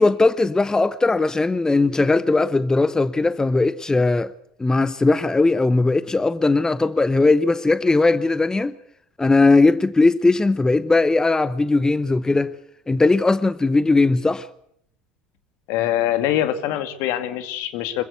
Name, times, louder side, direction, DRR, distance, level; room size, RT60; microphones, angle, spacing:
voice 1, 0.0-4.3 4.6-8.7 9.2-12.6 12.9-14.5, left 3 dB, 15° left, 0.9 m, -18 dB
voice 2, 15.7-18.0, left 12 dB, 60° left, 2.3 m, -23 dB
25.5 x 15.5 x 8.2 m
hypercardioid pair, 75°, 5 cm